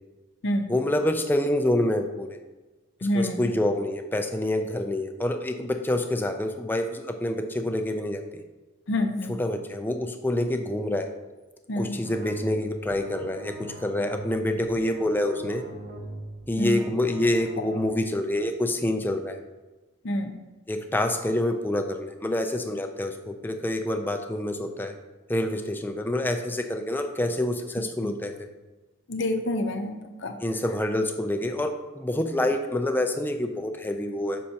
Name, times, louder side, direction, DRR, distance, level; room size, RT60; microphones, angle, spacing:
voice 1, 0.7-2.3 3.1-8.2 9.3-11.1 11.8-15.6 16.5-19.4 20.7-24.9 25.3-28.4 30.4-34.4, left 1 dB, 10° left, 5 dB, 0.4 m, -27 dB
voice 2, 3.0-3.5 8.9-9.4 11.7-12.0 16.6-16.8 20.0-20.3 28.0-28.1 29.1-30.4, left 1 dB, 60° left, 5 dB, 0.7 m, -27 dB
sound 1, 12.0-18.0, right 1 dB, 50° right, 0.7 m, -40 dB
6.3 x 5.7 x 2.8 m, 1.2 s
head